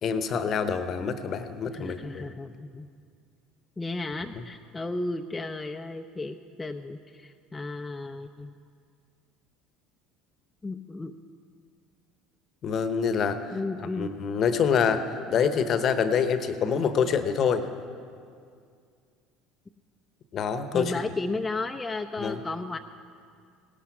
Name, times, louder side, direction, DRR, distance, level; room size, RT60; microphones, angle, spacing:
voice 1, 0.0-2.3 12.6-13.4 13.9-17.7 20.3-20.9 22.2-22.4, left 6 dB, 45° left, 11 dB, 1.0 m, -26 dB
voice 2, 1.7-2.9 3.8-8.5 10.6-11.1 13.5-14.1 20.7-22.8, left 2 dB, 15° left, 4 dB, 0.6 m, -34 dB
17.5 x 11.5 x 6.1 m, 2.3 s
hypercardioid pair, 65°, 0 cm